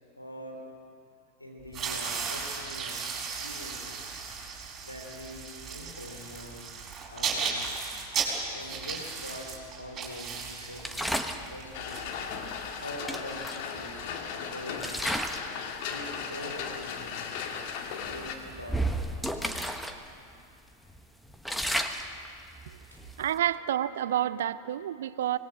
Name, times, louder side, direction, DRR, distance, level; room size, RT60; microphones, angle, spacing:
voice 1, 0.2-0.6 1.4-4.1 4.8-6.7 7.1-7.8 8.5-12.0 12.8-15.0 15.8-17.4 18.1-18.9 22.9-23.0, left 1 dB, 85° left, 1 dB, 3.8 m, -44 dB
sound 1, 1.7-12.7, right 5 dB, 25° right, 4.9 m, -36 dB
sound 2, 10.8-11.5 12.6-12.7 13.1-14.3 14.8-15.5 15.9-16.2 16.8-16.9 17.3-17.5 18.0-20.0 20.3-20.4 20.9-23.4, right 1 dB, ahead, 1.2 m, -33 dB
sound 3, 11.7-18.4, left 6 dB, 45° left, 2.0 m, -37 dB
voice 2, 23.2-25.4, right 11 dB, 60° right, 16 dB, 0.6 m, -29 dB
25.5 x 19.5 x 6.4 m, 2.5 s
figure-of-eight pair, 90°, 0 cm